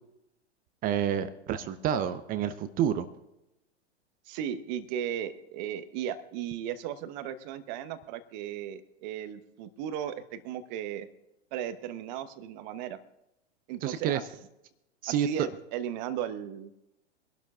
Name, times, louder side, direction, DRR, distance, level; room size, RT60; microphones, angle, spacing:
voice 1, 0.8-3.1 13.8-14.2 15.0-15.5, right 9 dB, 25° right, 13 dB, 0.7 m, -28 dB
voice 2, 4.3-11.1 11.5-13.0 13.7-14.2 15.1-16.7, right 10 dB, 40° right, 11 dB, 1.1 m, -36 dB
24.5 x 12.0 x 2.4 m, 0.89 s
figure-of-eight pair, 100°, 34 cm